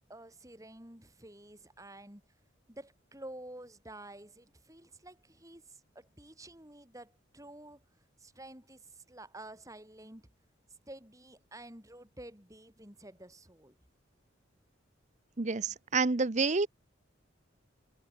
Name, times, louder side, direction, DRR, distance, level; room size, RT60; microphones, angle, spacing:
voice 1, 0.1-2.2 2.7-7.8 8.2-10.3 10.9-13.8, right 1 dB, 15° right, 5.5 m, -50 dB
voice 2, 15.4-16.7, right 4 dB, 35° right, 0.7 m, -28 dB
head